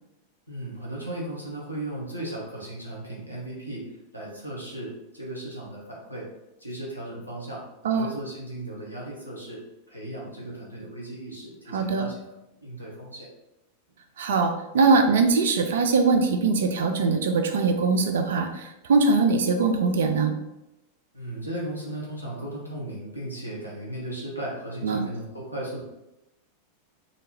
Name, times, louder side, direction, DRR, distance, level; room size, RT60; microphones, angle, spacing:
voice 1, 0.5-6.3 6.6-9.6 9.9-12.2 12.5-13.3 21.1-25.8, right 1 dB, 90° right, -4 dB, 0.8 m, -36 dB
voice 2, 11.7-12.1 14.2-20.3 24.8-25.0, right 4 dB, 60° right, 5 dB, 0.3 m, -22 dB
2.8 x 2.3 x 2.8 m, 0.93 s
figure-of-eight pair, 90°, 0 cm